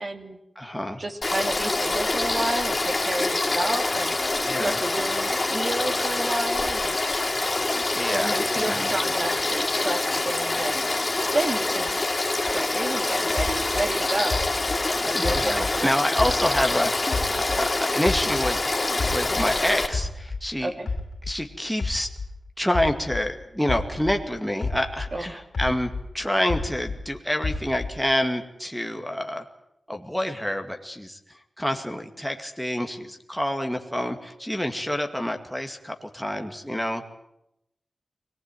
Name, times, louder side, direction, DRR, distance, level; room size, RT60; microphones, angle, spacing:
voice 1, 0.0-0.4 1.0-4.2 4.6-7.0 7.8-7.9 8.1-10.8 11.3-12.0 12.4-14.4 15.0-15.9 16.2-16.3 20.6-20.9 25.1-25.2, right 2 dB, 40° right, 6 dB, 2.9 m, -30 dB
voice 2, 0.6-1.0 4.5-4.8 7.9-8.9 15.1-20.7 21.2-22.1 22.6-29.4 29.9-37.0, left 1 dB, ahead, 4 dB, 2.2 m, -28 dB
Frog / Stream, 1.2-19.9, left 2 dB, 25° left, 4.7 m, -26 dB
sound 1, 13.4-16.8 17.1-19.6 19.9-24.3 24.6-27.1 27.4-28.1, left 3 dB, 65° left, 3.2 m, -31 dB
24.0 x 19.0 x 9.2 m, 0.81 s
wide cardioid pair, 125°, 0 cm